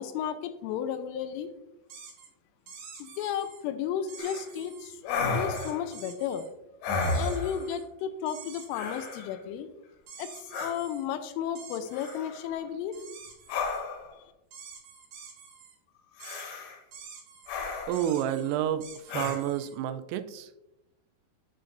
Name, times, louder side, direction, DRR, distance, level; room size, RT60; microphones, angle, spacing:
voice 1, 0.0-1.5 3.0-6.4 7.1-9.7 10.2-12.9, left 9 dB, 85° left, 9 dB, 3.0 m, -33 dB
sound 1, 1.9-2.3 2.7-3.6 4.1-5.0 5.5-6.5 7.0-7.9 8.3-9.2 10.1-11.1 11.6-12.2 12.9-13.8 14.5-15.8 16.2-16.4 16.9-17.5 17.9-19.8, right 6 dB, 65° right, 3.5 m, -48 dB
sound 2, 4.2-4.4 5.1-5.9 6.8-7.7 8.7-9.3 10.5-10.7 11.9-12.5 13.5-14.1 16.2-16.8 17.5-18.1 19.1-19.4, left 3 dB, 65° left, 3.1 m, -32 dB
voice 2, 17.9-18.8 19.1-20.5, right 11 dB, 90° right, 10 dB, 3.2 m, -29 dB
9.9 x 6.4 x 2.5 m, 0.92 s
omnidirectional pair, 5.8 m